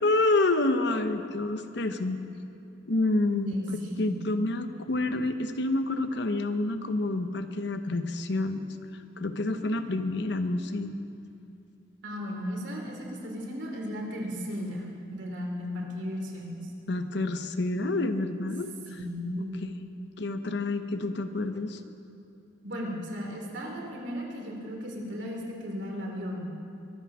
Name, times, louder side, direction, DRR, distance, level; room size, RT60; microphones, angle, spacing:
voice 1, 0.0-2.2 2.9-3.5 4.0-8.6 9.2-11.0 16.9-18.7 20.2-21.8, left 2 dB, 65° left, 9 dB, 0.9 m, -28 dB
voice 2, 3.3-4.1 9.8-10.1 12.0-16.7 18.9-19.7 22.6-26.5, equal, 70° right, 0 dB, 3.1 m, -35 dB
23.0 x 9.4 x 6.2 m, 2.7 s
head